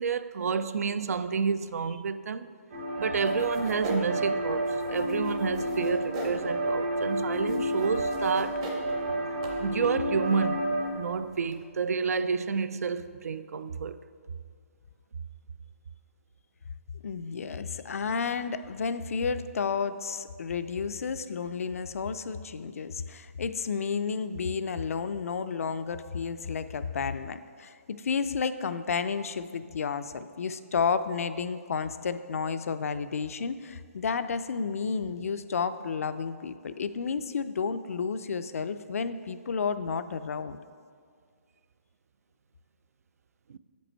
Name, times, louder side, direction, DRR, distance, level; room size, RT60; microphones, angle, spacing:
voice 1, 0.0-2.5 3.0-8.6 9.6-10.6 10.9-14.0 43.5-43.6, right 5 dB, 80° right, 0.4 m, -29 dB
sound 1, 2.7-10.9, right 1 dB, 45° right, 1.0 m, -30 dB
sound 2, 3.2-11.6, right 2 dB, 20° right, 0.6 m, -41 dB
voice 2, 17.0-40.6, left 5 dB, 70° left, 0.4 m, -31 dB
7.3 x 5.2 x 4.4 m
hypercardioid pair, 170°, 8 cm